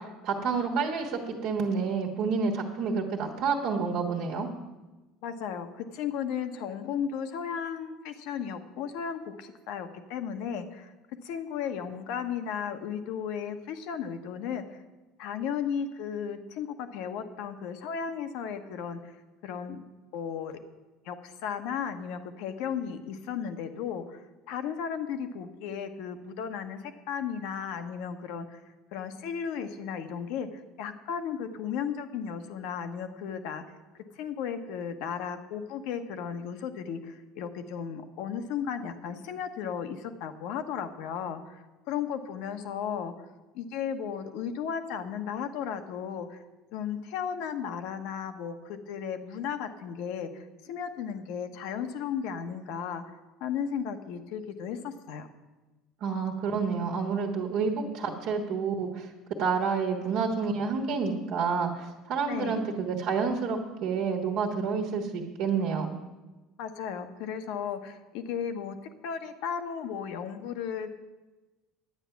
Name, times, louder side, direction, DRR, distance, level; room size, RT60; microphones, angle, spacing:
voice 1, 0.0-4.5 56.0-59.1 59.4-65.9, right 5 dB, 60° right, 1 dB, 1.4 m, -29 dB
voice 2, 5.2-10.9 11.2-14.8 15.2-19.1 19.4-19.8 20.1-20.6 21.0-28.6 28.9-33.8 34.1-43.1 43.5-46.4 46.7-53.0 53.4-55.3 62.3-62.6 66.6-68.7 69.0-70.9, left 7 dB, 65° left, 8 dB, 1.0 m, -35 dB
10.5 x 9.0 x 5.9 m, 1.1 s
hypercardioid pair, 65°, 0 cm